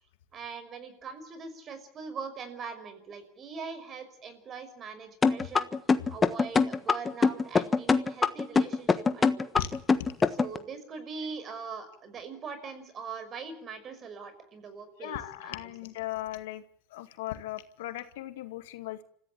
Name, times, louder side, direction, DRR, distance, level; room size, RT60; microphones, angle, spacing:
voice 1, 0.3-5.7 6.1-9.5 10.4-15.7, right 5 dB, 40° right, 11 dB, 5.6 m, -42 dB
sound 1, 5.2-10.6, left 4 dB, 20° left, 1.4 m, -23 dB
voice 2, 15.0-16.6 16.9-19.0, left 14 dB, 90° left, 9 dB, 2.1 m, -37 dB
28.5 x 15.0 x 8.5 m, 0.66 s
supercardioid pair, 110°, 0 cm